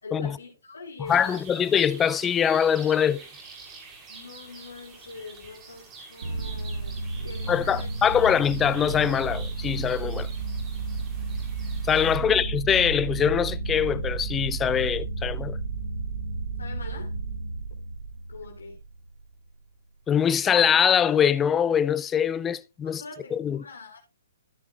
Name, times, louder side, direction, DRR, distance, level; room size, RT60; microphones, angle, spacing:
voice 1, 0.0-1.4 4.1-7.9 12.1-12.4 16.6-17.1 18.3-18.8 22.8-24.0, left 4 dB, 90° left, 2.9 m, -43 dB
sound 1, 1.0-12.2, right 4 dB, 25° right, 3.3 m, -46 dB
voice 2, 1.1-3.2 7.5-10.3 11.9-15.6 20.1-23.0 23.3-23.6, left 8 dB, 15° left, 0.5 m, -23 dB
sound 2, 6.2-19.1, right 3 dB, 70° right, 1.8 m, -32 dB
13.5 x 9.5 x 2.3 m
hypercardioid pair, 135°, 0 cm